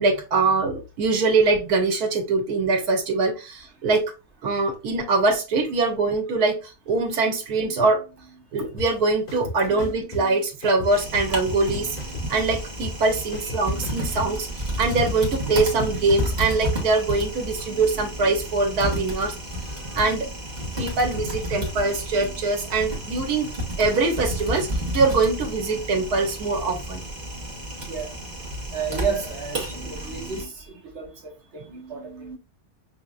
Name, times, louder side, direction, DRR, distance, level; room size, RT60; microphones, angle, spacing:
voice 1, 0.0-4.0 4.4-14.5 14.8-19.4 19.9-20.3 20.8-23.5 23.8-27.0 29.7-30.5 31.6-32.4, right 3 dB, 85° right, 1.5 m, -23 dB
sound 1, 8.8-8.9 9.3-10.2 10.6-11.7 12.0-14.3, left 2 dB, 45° left, 3.2 m, -34 dB
Typing, 10.8-30.4, equal, 30° right, 1.3 m, -31 dB
voice 2, 19.5-20.0 27.9-28.1 28.7-31.1 31.5-31.6 31.9-32.4, right 6 dB, 50° right, 1.4 m, -32 dB
5.8 x 2.8 x 2.4 m
omnidirectional pair, 1.6 m